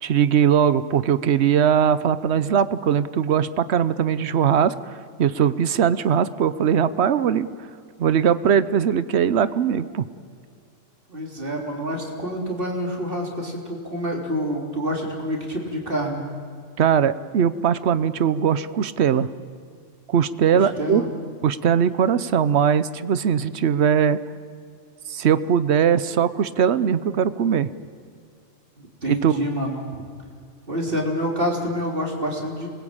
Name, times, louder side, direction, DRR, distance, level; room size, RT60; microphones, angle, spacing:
voice 1, 0.0-7.5 8.0-10.1 16.8-19.3 20.1-21.0 21.4-24.2 25.1-27.7 29.1-29.4, right 8 dB, 60° right, 15 dB, 1.0 m, -20 dB
voice 2, 11.1-16.2 20.8-21.1 29.0-29.9 30.7-32.7, equal, 45° right, 0 dB, 3.8 m, -27 dB
27.0 x 21.0 x 8.8 m, 2.2 s
omnidirectional pair, 1.4 m